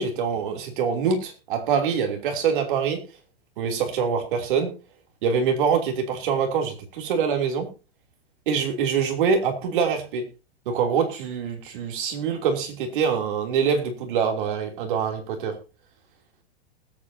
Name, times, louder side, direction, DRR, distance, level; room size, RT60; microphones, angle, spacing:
voice 1, 0.0-3.0 3.6-4.7 5.2-7.7 8.5-10.2 10.6-15.5, right 6 dB, 55° right, 3 dB, 3.2 m, -24 dB
20.5 x 8.8 x 2.8 m, 0.31 s
supercardioid pair, 175°, 31 cm